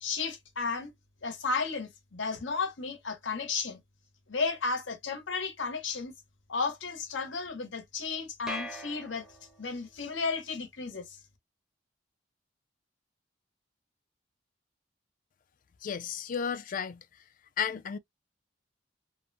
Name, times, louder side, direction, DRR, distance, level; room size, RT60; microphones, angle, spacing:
voice 1, 0.0-0.9 1.2-3.8 4.3-6.1 6.5-9.3 9.6-11.0, left 4 dB, 85° left, 0.9 m, -33 dB
sound 1, 8.5-9.8, equal, 5° right, 0.6 m, -41 dB
voice 2, 15.8-17.0 17.6-18.0, left 7 dB, 45° left, 0.4 m, -33 dB
2.7 x 2.1 x 2.6 m
head